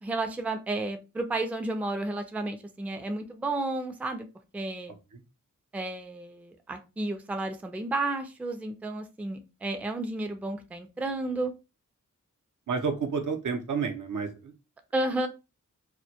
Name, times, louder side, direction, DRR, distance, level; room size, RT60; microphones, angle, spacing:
voice 1, 0.0-4.3 4.5-4.9 5.7-11.5 14.9-15.3, right 2 dB, 5° right, 6 dB, 0.3 m, -32 dB
voice 2, 12.7-14.5, right 5 dB, 75° right, 4 dB, 0.5 m, -30 dB
2.1 x 2.1 x 2.7 m, 0.28 s
wide cardioid pair, 75°, 31 cm